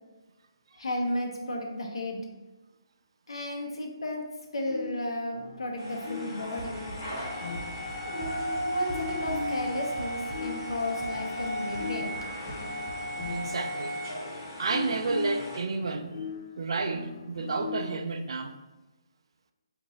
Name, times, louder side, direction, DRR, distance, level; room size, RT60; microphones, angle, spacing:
voice 1, 0.8-2.2 3.3-4.2 4.5-6.8 8.0-12.1, left 1 dB, 90° left, 1 dB, 0.8 m, -33 dB
sound 1, 4.6-18.2, left 6 dB, 55° left, 0.4 m, -41 dB
sound 2, 5.8-15.6, equal, 20° left, 1.4 m, -35 dB
Run, 6.6-13.6, right 2 dB, 10° right, 0.6 m, -44 dB
voice 2, 13.3-14.0 14.6-16.3 16.6-18.6, right 3 dB, 70° right, 7 dB, 0.4 m, -31 dB
2.9 x 2.6 x 3.8 m, 1.1 s
hypercardioid pair, 165°, 3 cm